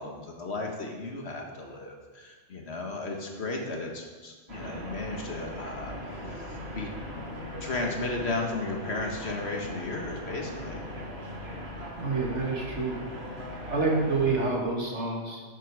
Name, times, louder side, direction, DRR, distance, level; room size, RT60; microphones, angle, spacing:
voice 1, 0.0-6.1 6.7-6.9 7.6-10.8, left 2 dB, 70° left, 1 dB, 1.9 m, -34 dB
sound 1, 4.5-14.5, equal, 65° right, 2.3 m, -39 dB
voice 2, 12.0-13.0 13.7-15.4, right 3 dB, 85° right, 0 dB, 2.3 m, -27 dB
11.5 x 8.8 x 4.8 m, 1.4 s
omnidirectional pair, 1.1 m